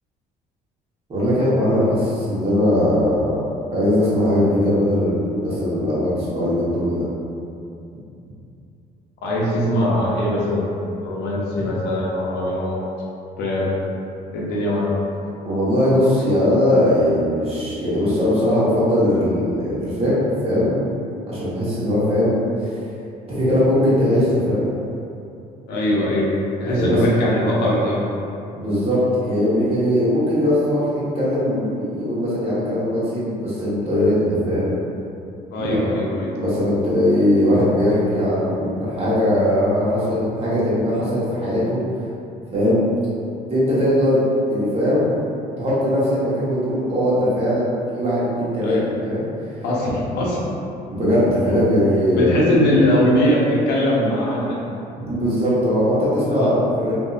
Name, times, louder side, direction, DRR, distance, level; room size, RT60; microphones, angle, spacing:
voice 1, 1.1-3.2 3.7-7.1 15.4-20.1 20.4-20.8 21.3-22.8 23.3-24.7 26.7-27.0 28.5-34.7 35.6-35.8 36.3-41.8 42.5-42.8 43.5-44.2 44.5-45.1 45.6-49.6 50.9-52.5 55.0-56.9, left 1 dB, 35° right, -10 dB, 1.1 m, -20 dB
voice 2, 9.2-10.7 11.0-12.8 13.4-13.7 14.3-14.9 25.7-26.3 26.6-28.0 35.5-36.3 48.6-48.8 49.6-50.4 52.2-54.6 56.3-56.5, equal, 80° left, -5 dB, 0.7 m, -21 dB
2.7 x 2.6 x 2.4 m, 2.7 s
cardioid pair, 110°, 17 cm